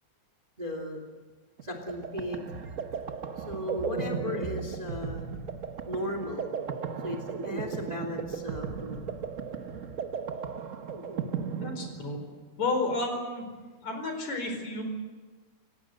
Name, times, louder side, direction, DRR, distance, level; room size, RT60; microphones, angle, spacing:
voice 1, 0.6-1.1 1.6-2.5 3.4-5.3 5.9-6.5 7.0-9.0, equal, 15° right, 3 dB, 2.8 m, -36 dB
sound 1, 1.6-12.4, right 6 dB, 85° right, 0.6 m, -36 dB
voice 2, 11.6-12.2 12.6-13.4 13.8-14.8, left 2 dB, 70° left, 5 dB, 5.9 m, -31 dB
29.0 x 17.0 x 7.9 m, 1.4 s
omnidirectional pair, 3.3 m